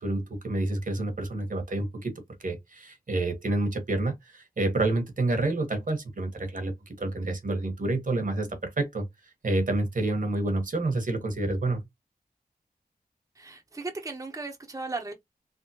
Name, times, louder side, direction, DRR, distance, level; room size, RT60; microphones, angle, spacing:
voice 1, 0.0-2.1 2.4-9.1 9.4-11.8, right 2 dB, 60° right, 1.2 m, -28 dB
voice 2, 13.4-15.1, right 3 dB, 20° right, 0.7 m, -36 dB
3.6 x 2.1 x 2.8 m
cardioid pair, 45°, 16 cm